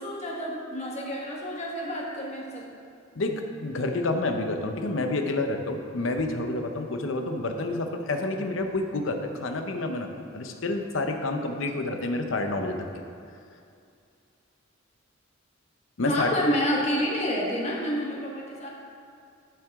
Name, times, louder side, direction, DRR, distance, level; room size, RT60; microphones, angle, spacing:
voice 1, 0.0-2.7 16.0-18.7, equal, 35° left, -3 dB, 1.3 m, -29 dB
voice 2, 3.1-12.8 16.0-16.3, left 2 dB, 70° left, 5 dB, 0.8 m, -29 dB
12.0 x 6.0 x 3.6 m, 2.4 s
head